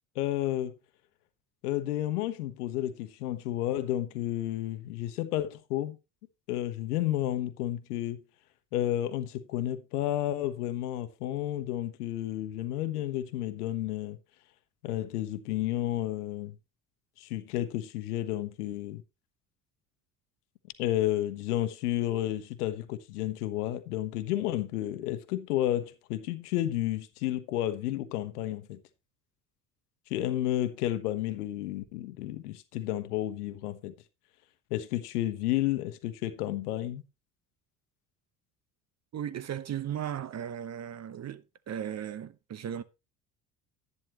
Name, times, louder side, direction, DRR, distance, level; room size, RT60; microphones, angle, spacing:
voice 1, 0.1-0.7 1.6-6.0 6.5-8.2 8.7-14.2 14.8-16.6 17.2-19.0 20.8-28.8 30.1-33.9 34.7-37.0, left 13 dB, 75° left, 1.1 m, -31 dB
voice 2, 39.1-42.8, right 9 dB, 35° right, 0.9 m, -36 dB
11.0 x 10.5 x 3.0 m
hypercardioid pair, 60°, 46 cm